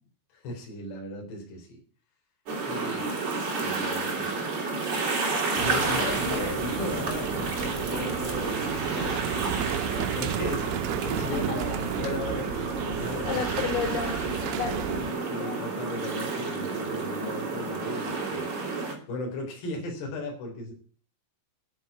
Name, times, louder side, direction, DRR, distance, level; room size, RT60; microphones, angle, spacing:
voice 1, 0.3-1.8 2.6-3.1 3.5-4.5 5.6-13.6 14.9-18.5 19.1-20.7, left 2 dB, 55° left, 0 dB, 5.7 m, -36 dB
sound 1, 2.5-18.9, right 4 dB, 40° right, 4.4 m, -30 dB
sound 2, 5.6-15.1, right 13 dB, 80° right, 3.1 m, -35 dB
voice 2, 11.3-11.8 13.2-15.7, left 6 dB, 80° left, 2 dB, 6.7 m, -33 dB
10.5 x 8.2 x 9.3 m, 0.42 s
omnidirectional pair, 5.8 m